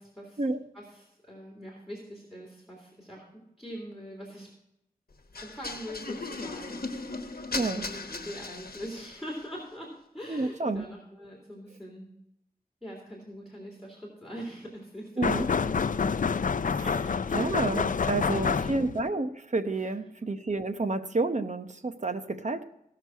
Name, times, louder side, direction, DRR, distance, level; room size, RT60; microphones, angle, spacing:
voice 1, 0.0-0.4 0.7-4.5 5.4-7.2 7.6-12.1 12.8-16.0 16.8-17.4 18.0-18.8 19.8-19.9, equal, ahead, -5 dB, 3.3 m, -43 dB
sound 1, 5.3-9.3, left 3 dB, 85° left, 1.1 m, -37 dB
voice 2, 7.5-7.9 10.3-10.9 15.2-15.5 16.6-16.8 17.3-22.6, right 3 dB, 50° right, 8 dB, 0.9 m, -30 dB
sound 2, 15.2-19.1, left 5 dB, 60° left, 0.4 m, -28 dB
17.5 x 6.0 x 4.5 m, 0.81 s
wide cardioid pair, 65°, 15 cm